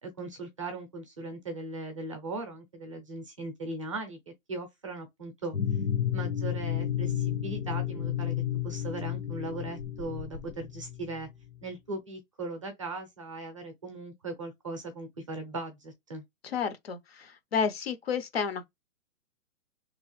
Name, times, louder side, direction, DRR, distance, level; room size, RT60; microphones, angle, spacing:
voice 1, 0.0-5.5 6.1-11.3 11.6-16.2, right 2 dB, 25° right, 0.5 m, -39 dB
sound 1, 5.5-11.4, left 10 dB, 85° left, 1.3 m, -32 dB
voice 2, 16.4-18.7, left 6 dB, 50° left, 0.7 m, -31 dB
3.2 x 3.0 x 3.0 m
hypercardioid pair, 170°, 41 cm